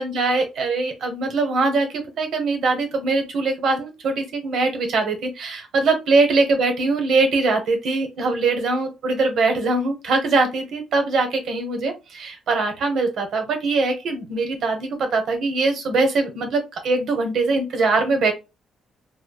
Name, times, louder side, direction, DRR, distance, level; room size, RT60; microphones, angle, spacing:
voice 1, 0.0-18.3, right 3 dB, 70° right, 5 dB, 0.8 m, -22 dB
3.2 x 2.1 x 2.2 m, 0.26 s
cardioid pair, 90°, 0 cm